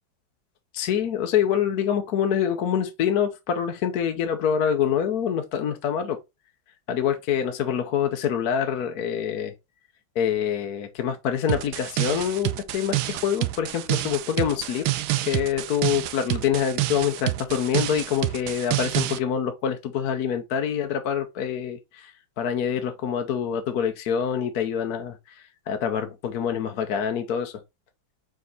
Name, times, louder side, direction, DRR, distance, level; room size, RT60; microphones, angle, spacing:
voice 1, 0.7-6.2 6.9-9.5 10.1-14.9 15.3-27.5, left 8 dB, 60° left, 1.1 m, -26 dB
sound 1, 11.5-19.2, right 16 dB, 90° right, 1.4 m, -28 dB
5.1 x 4.6 x 3.9 m
omnidirectional pair, 2.2 m